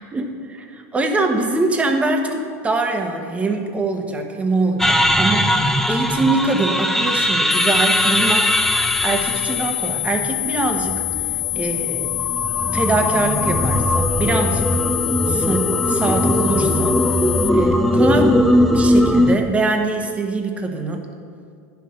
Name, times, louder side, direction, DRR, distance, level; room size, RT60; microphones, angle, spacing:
voice 1, 0.0-8.5 9.0-11.1 11.6-12.1 12.7-14.8 15.3-17.0 17.5-18.4 18.6-21.1, right 2 dB, 15° right, 4 dB, 1.1 m, -23 dB
sound 1, 4.8-19.4, left 1 dB, 5° left, 0.5 m, -20 dB
sound 2, 7.5-17.5, left 18 dB, 85° left, 0.4 m, -25 dB
10.0 x 5.8 x 6.5 m, 2.3 s
supercardioid pair, 120°, 8 cm